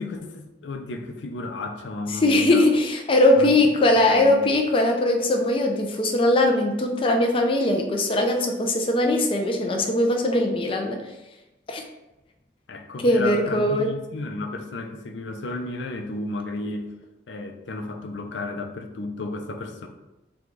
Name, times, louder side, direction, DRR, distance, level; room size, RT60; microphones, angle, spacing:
voice 1, 0.0-2.7 3.4-3.6 4.1-4.4 12.7-16.9 17.3-19.9, left 2 dB, 90° left, 4 dB, 0.5 m, -33 dB
voice 2, 2.1-11.0 11.7-11.8 13.0-13.9, left 1 dB, 30° left, 2 dB, 0.4 m, -20 dB
4.8 x 2.3 x 3.8 m, 0.98 s
head